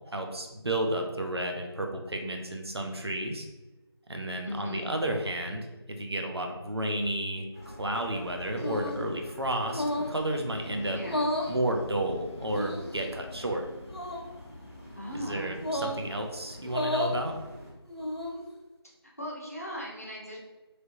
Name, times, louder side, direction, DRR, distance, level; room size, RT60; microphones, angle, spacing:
voice 1, 0.1-3.5 4.1-11.0 11.5-13.6 15.1-17.3, right 1 dB, 70° right, 3 dB, 0.7 m, -32 dB
voice 2, 4.4-4.9 10.9-11.3 15.0-15.7 18.8-20.4, equal, 35° left, -3 dB, 0.6 m, -39 dB
sound 1, 7.5-17.7, equal, 30° right, 1.3 m, -47 dB
sound 2, 8.6-9.1 9.7-10.2 11.0-11.6 12.5-13.0 13.9-14.2 15.6-16.0 16.6-17.2 17.9-18.4, left 1 dB, 70° left, 0.9 m, -32 dB
sound 3, 9.4-15.9, left 3 dB, 85° left, 0.5 m, -50 dB
3.2 x 2.9 x 2.6 m, 1.1 s
figure-of-eight pair, 175°, 14 cm